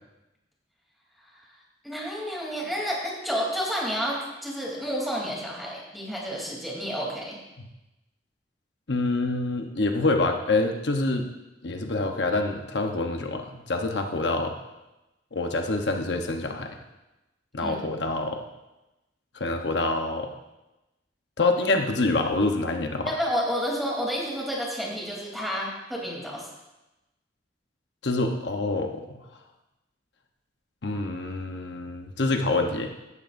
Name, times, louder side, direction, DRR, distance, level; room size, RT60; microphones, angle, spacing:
voice 1, 1.8-7.4 17.6-17.8 23.0-26.5, equal, ahead, -3 dB, 3.2 m, -30 dB
voice 2, 8.9-11.3 11.6-14.5 15.3-16.8 17.5-18.4 19.3-20.3 21.4-23.1 28.0-29.0 30.8-32.9, left 2 dB, 75° left, 4 dB, 1.0 m, -26 dB
16.5 x 12.0 x 2.6 m, 0.99 s
head